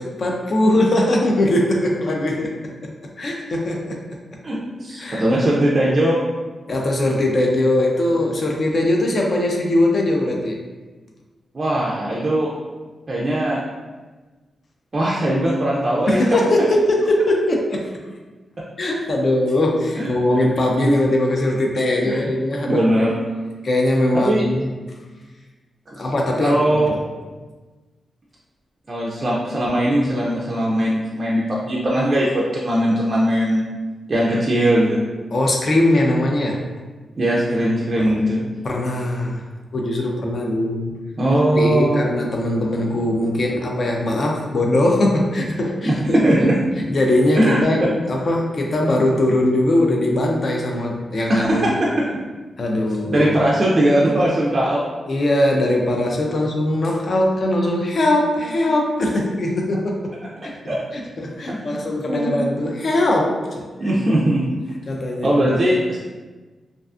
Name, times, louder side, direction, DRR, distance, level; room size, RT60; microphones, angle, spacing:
voice 1, 0.0-2.5 2.8-2.9 3.2-4.2 5.0-5.6 6.7-10.6 16.1-17.9 18.8-22.8 23.6-24.7 26.0-27.0 35.3-36.6 38.0-38.1 38.6-39.5 39.7-41.0 41.5-46.2 46.8-51.7 52.6-53.3 55.1-60.1 60.4-64.2 64.9-65.6, left 1 dB, 45° left, 0 dB, 0.4 m, -21 dB
voice 2, 4.4-6.2 11.5-12.5 13.1-13.6 14.9-16.2 20.0-20.4 20.8-21.0 22.1-22.2 22.7-23.2 24.1-24.4 25.9-26.1 26.4-26.9 28.9-33.7 34.1-35.0 37.2-38.4 41.2-42.0 45.8-46.6 47.4-47.6 51.3-52.1 53.1-54.8 60.7-60.8 61.5-61.8 62.1-62.4 63.8-64.4 65.2-66.0, right 1 dB, 35° right, -5 dB, 0.3 m, -19 dB
2.4 x 2.3 x 2.4 m, 1.3 s
wide cardioid pair, 135°, 0 cm